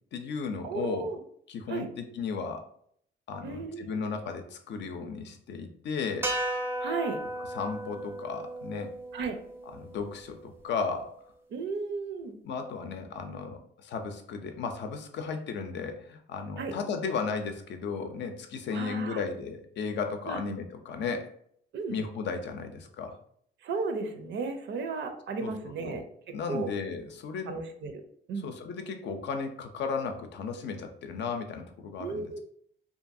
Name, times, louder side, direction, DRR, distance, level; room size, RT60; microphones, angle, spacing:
voice 1, 0.1-1.1 1.5-2.7 3.3-6.3 7.5-8.9 9.7-11.1 12.4-21.3 21.9-23.2 25.4-26.0 26.3-27.6 28.4-32.4, left 5 dB, 65° left, 6 dB, 0.5 m, -35 dB
voice 2, 0.6-1.2 1.7-1.9 3.4-4.0 6.8-7.2 9.1-9.4 11.5-12.3 16.6-16.7 18.7-19.2 20.3-20.4 21.7-22.0 23.6-26.0 26.5-26.7 27.5-28.0 28.3-28.5 32.0-32.4, right 4 dB, 65° right, 7 dB, 0.5 m, -34 dB
sound 1, 6.2-10.6, right 1 dB, 10° right, 0.4 m, -35 dB
2.7 x 2.3 x 2.6 m, 0.65 s
cardioid pair, 90°, 20 cm